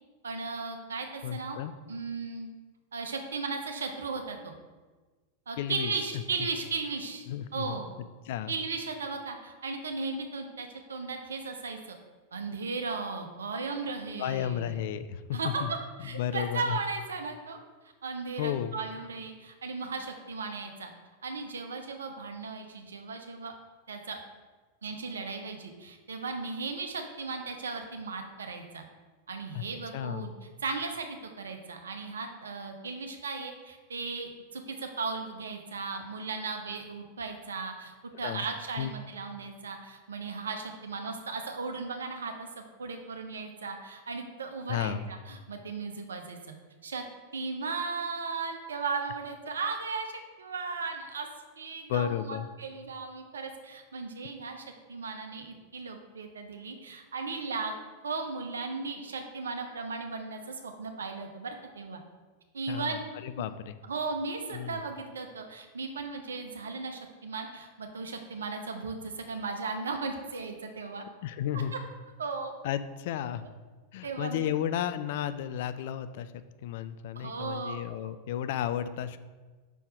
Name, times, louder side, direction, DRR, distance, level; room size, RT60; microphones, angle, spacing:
voice 1, 0.2-1.6 1.9-2.5 2.9-4.6 5.5-7.2 7.5-7.9 8.5-12.0 12.3-14.8 15.3-17.6 18.0-20.9 21.2-23.5 23.9-24.2 24.8-28.8 29.3-30.3 30.6-46.4 46.8-47.0 47.3-50.1 50.4-51.3 51.6-57.7 58.0-62.0 62.5-63.0 63.4-63.5 63.9-71.0 72.2-72.5 74.0-74.5 77.2-78.1, right 4 dB, 70° right, 5 dB, 0.8 m, -36 dB
voice 2, 1.2-1.7 5.6-5.9 7.3-7.8 8.3-8.5 14.2-15.7 16.0-16.8 18.4-18.8 29.5-29.6 29.9-30.3 38.2-38.4 38.8-38.9 44.7-45.0 51.9-52.4 62.7-63.8 64.5-64.8 71.2-71.7 72.6-73.4 73.9-79.2, left 10 dB, 50° left, 12 dB, 0.3 m, -33 dB
5.4 x 4.5 x 4.9 m, 1.3 s
figure-of-eight pair, 90°, 0 cm